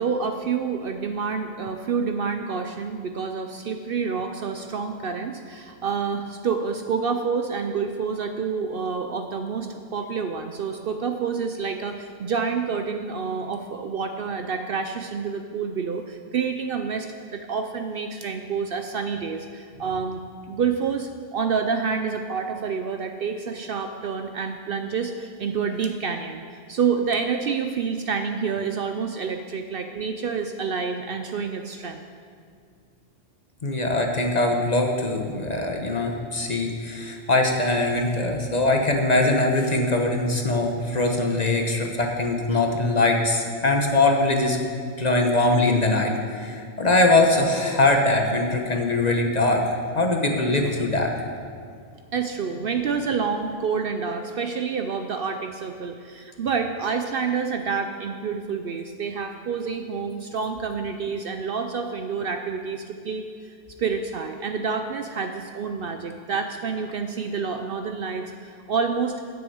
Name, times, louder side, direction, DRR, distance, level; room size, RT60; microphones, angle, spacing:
voice 1, 0.0-20.2 20.5-32.0 52.1-63.5 63.8-69.1, right 5 dB, 60° right, 6 dB, 0.7 m, -28 dB
voice 2, 33.6-44.6 45.0-46.1 46.4-49.6 49.9-51.1, left 2 dB, 35° left, 2 dB, 1.0 m, -22 dB
9.5 x 7.1 x 7.7 m, 2.2 s
omnidirectional pair, 1.2 m